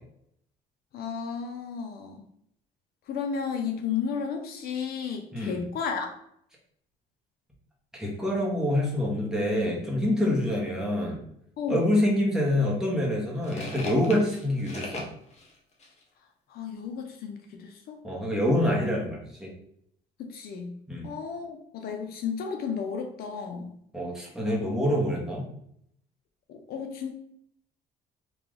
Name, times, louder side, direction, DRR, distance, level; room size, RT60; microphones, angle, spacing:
voice 1, 0.9-2.2 3.1-6.1 11.6-11.9 16.5-18.0 20.2-20.7 21.0-23.8 26.5-27.1, left 6 dB, 65° left, 5 dB, 0.6 m, -33 dB
voice 2, 5.3-5.6 7.9-11.2 11.7-15.0 18.0-19.5 20.9-21.1 23.9-25.4, left 1 dB, 5° right, -4 dB, 1.3 m, -26 dB
sound 1, 12.1-12.2 12.8-16.0, left 2 dB, 40° left, 0.9 m, -40 dB
3.2 x 2.8 x 3.8 m, 0.71 s
cardioid pair, 110°, 17 cm